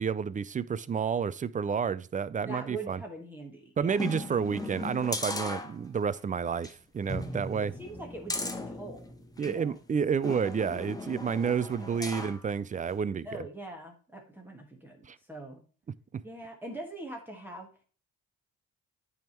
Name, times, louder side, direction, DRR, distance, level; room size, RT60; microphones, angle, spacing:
voice 1, 0.0-3.0 3.8-7.7 9.4-13.5 15.1-15.2 16.1-16.2, right 6 dB, 25° right, 0.4 m, -30 dB
voice 2, 2.4-4.1 7.8-9.0 9.4-9.8 11.8-12.4 13.2-15.6 16.2-17.7, right 2 dB, 5° right, 1.4 m, -43 dB
sound 1, 4.0-6.2 6.6-6.7 7.1-9.6 10.2-12.4 12.9-13.0, left 2 dB, 10° left, 1.0 m, -37 dB
9.2 x 3.6 x 4.2 m
cardioid pair, 90°, 30 cm